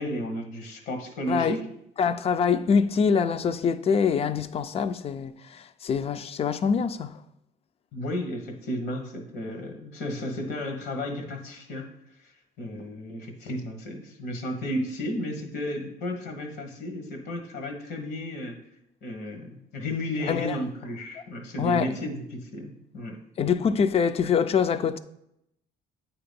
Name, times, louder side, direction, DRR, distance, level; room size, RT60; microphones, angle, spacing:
voice 1, 0.0-1.6 7.9-11.9 12.2-18.6 19.0-23.2, left 1 dB, 75° left, 1.2 m, -33 dB
voice 2, 2.0-7.2 20.3-20.6 21.6-21.9 23.4-25.0, left 6 dB, 35° left, 0.4 m, -24 dB
8.8 x 2.9 x 5.1 m
cardioid pair, 110°, 17 cm